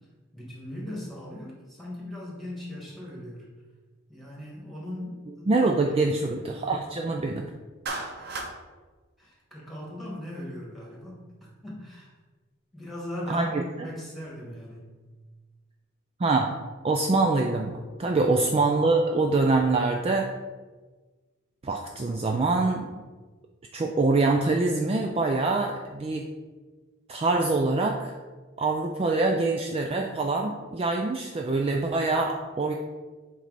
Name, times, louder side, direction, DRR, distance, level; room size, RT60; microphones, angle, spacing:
voice 1, 0.3-3.5 4.1-6.1 7.9-8.3 9.2-11.2 11.6-12.1 12.7-13.6 13.8-15.0 18.3-18.6, left 1 dB, ahead, -4 dB, 2.0 m, -39 dB
voice 2, 5.5-7.4 13.3-13.6 16.2-16.5 16.8-20.3 21.6-22.9 23.7-26.3 27.1-28.1 28.6-32.7, right 3 dB, 30° right, 2 dB, 0.4 m, -24 dB
Clapping, 7.9-8.5, right 3 dB, 55° right, 0.8 m, -33 dB
7.5 x 4.0 x 4.1 m, 1.3 s
head